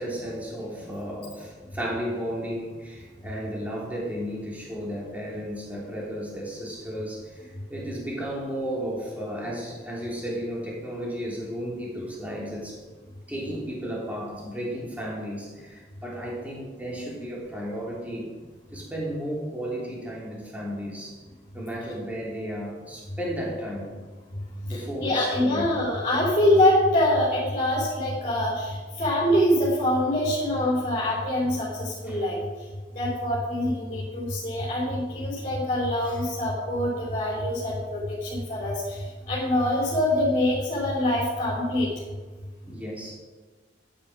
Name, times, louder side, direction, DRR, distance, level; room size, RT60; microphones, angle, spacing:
voice 1, 0.0-12.8 13.3-18.3 18.7-21.2 21.5-23.9 24.7-25.7 32.1-32.3 42.7-43.1, equal, 10° right, -4 dB, 3.4 m, -34 dB
voice 2, 24.7-32.4 32.9-39.0 39.3-41.9, left 1 dB, 35° left, -8 dB, 4.6 m, -24 dB
15.0 x 9.5 x 5.1 m, 1.4 s
head